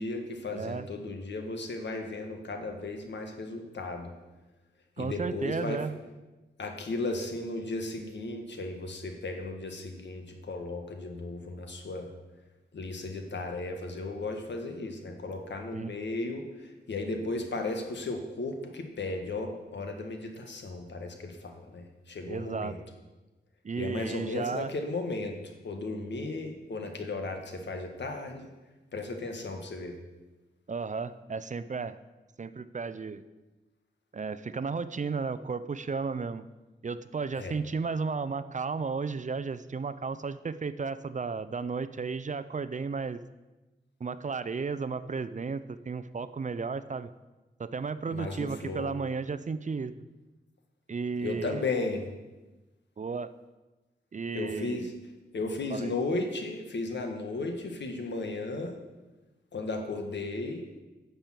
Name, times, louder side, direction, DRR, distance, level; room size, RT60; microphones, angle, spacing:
voice 1, 0.0-4.1 5.0-5.8 6.6-12.1 12.7-22.8 23.8-25.4 25.6-28.5 28.9-30.0 37.4-37.6 48.1-49.0 51.2-52.1 54.3-54.9 55.3-58.8 59.5-60.7, left 2 dB, 80° left, 4 dB, 1.7 m, -35 dB
voice 2, 0.5-0.9 5.0-5.9 15.7-15.9 22.3-22.8 23.6-24.7 30.7-32.0 32.4-33.2 34.1-36.5 36.8-43.2 44.0-47.1 47.6-49.9 50.9-51.6 53.0-53.3 54.1-54.9 55.7-55.9, right 4 dB, 45° right, 14 dB, 0.6 m, -34 dB
10.5 x 6.9 x 7.5 m, 1.1 s
wide cardioid pair, 80°, 18 cm